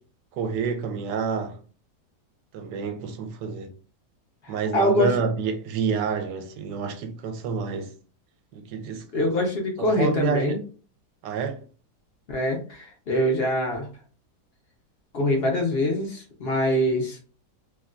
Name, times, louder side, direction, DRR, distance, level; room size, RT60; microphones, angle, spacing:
voice 1, 0.3-1.6 2.5-3.7 4.5-7.9 8.5-9.3 9.8-10.6 11.2-11.6, right 5 dB, 80° right, 1.2 m, -28 dB
voice 2, 4.4-5.1 9.1-10.6 12.3-13.9 15.1-17.2, left 1 dB, 50° left, 0.7 m, -24 dB
3.2 x 2.3 x 2.4 m
omnidirectional pair, 1.8 m